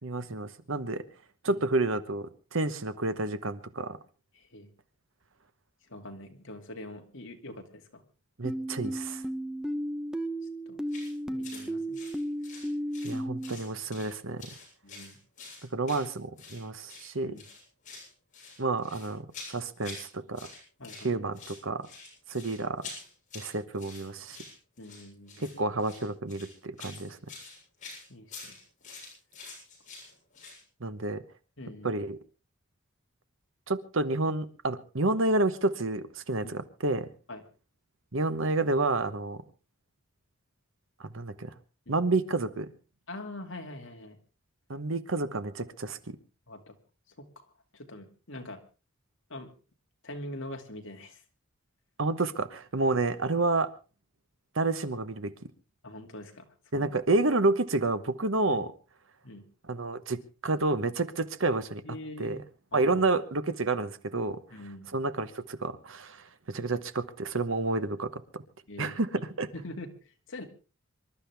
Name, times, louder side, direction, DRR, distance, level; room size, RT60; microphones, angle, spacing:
voice 1, 0.0-1.0 1.4-4.0 8.4-9.2 13.0-14.4 15.6-17.3 18.6-20.5 21.0-21.9 22.3-22.9 23.3-24.4 25.4-27.2 30.8-31.2 31.8-32.2 33.7-37.1 38.1-39.4 41.0-41.5 41.9-42.7 44.7-46.2 52.0-53.7 54.5-55.3 56.7-58.7 59.7-61.8 62.2-62.4 62.7-64.4 64.9-68.4 68.8-69.1 69.4-69.5, right 2 dB, 65° right, 12 dB, 1.2 m, -29 dB
voice 2, 4.3-4.7 5.9-8.0 10.7-10.8 11.3-12.0 14.8-15.2 17.2-17.4 20.8-21.3 24.8-25.5 28.1-28.6 31.6-31.9 36.4-36.6 37.3-37.4 41.9-42.0 43.1-44.2 46.5-46.8 47.2-47.4 47.7-48.6 49.3-49.5 50.0-51.2 55.8-57.0 58.5-58.6 59.2-59.4 61.8-62.4 62.7-63.0 64.5-64.9 68.7-69.3 69.5-70.4, left 1 dB, 60° left, 3 dB, 2.5 m, -44 dB
sound 1, 8.4-13.5, equal, 5° right, 0.8 m, -34 dB
sound 2, 10.9-11.1 11.4-11.7 11.9-13.2 13.4-14.1 14.4-16.6 16.9-17.1 17.4-18.1 18.3-20.1 20.3-21.1 21.3-30.6, left 4 dB, 35° left, 7.4 m, -46 dB
26.5 x 12.0 x 3.5 m, 0.34 s
head